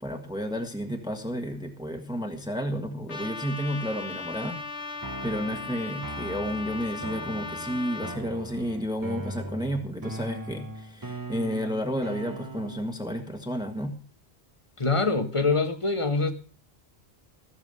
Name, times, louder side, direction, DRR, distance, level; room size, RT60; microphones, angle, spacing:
voice 1, 0.0-4.6 5.2-13.9, equal, 5° right, 1.4 m, -31 dB
Trumpet, 3.1-8.2, left 4 dB, 80° left, 2.0 m, -37 dB
sound 1, 5.0-13.0, right 2 dB, 20° right, 0.9 m, -40 dB
voice 2, 14.8-16.3, left 3 dB, 30° left, 1.5 m, -24 dB
16.0 x 7.2 x 6.9 m
omnidirectional pair, 1.1 m